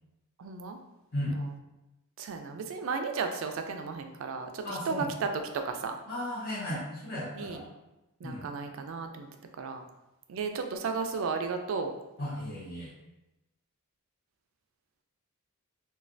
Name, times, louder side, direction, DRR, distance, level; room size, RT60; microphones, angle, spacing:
voice 1, 0.4-0.8 1.2-1.5 2.2-6.0 7.3-7.6 8.2-9.3 9.6-9.8 10.3-11.9, right 5 dB, 65° right, 6 dB, 0.3 m, -34 dB
voice 2, 4.6-5.0 6.1-7.6 8.2-8.4 12.2-12.9, left 1 dB, 45° left, -9 dB, 0.8 m, -35 dB
3.1 x 2.2 x 2.5 m, 0.97 s
head